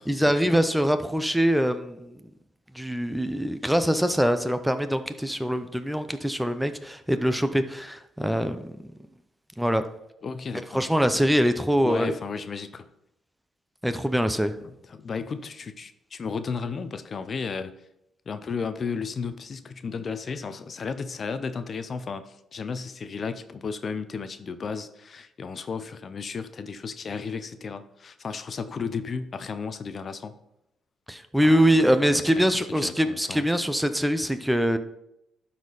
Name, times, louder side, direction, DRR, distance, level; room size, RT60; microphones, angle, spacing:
voice 1, 0.1-2.2 2.7-8.7 9.6-9.8 10.7-12.1 13.8-14.5 31.1-34.8, equal, 5° right, 10 dB, 0.6 m, -23 dB
voice 2, 10.2-11.3 11.8-12.9 14.6-17.9 18.3-30.3 31.4-33.4, left 5 dB, 45° left, 11 dB, 0.6 m, -34 dB
12.0 x 4.3 x 4.0 m, 0.82 s
cardioid pair, 90°, 0 cm